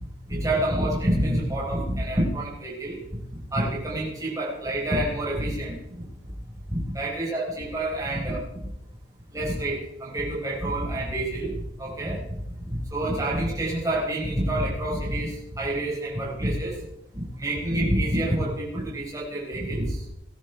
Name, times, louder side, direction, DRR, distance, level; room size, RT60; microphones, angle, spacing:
voice 1, 0.3-3.0 3.5-5.7 6.7-8.4 9.3-11.5 11.8-12.2 12.9-16.8 17.1-20.0, right 1 dB, 20° right, -5 dB, 4.4 m, -27 dB
19.5 x 13.0 x 3.4 m, 0.87 s
head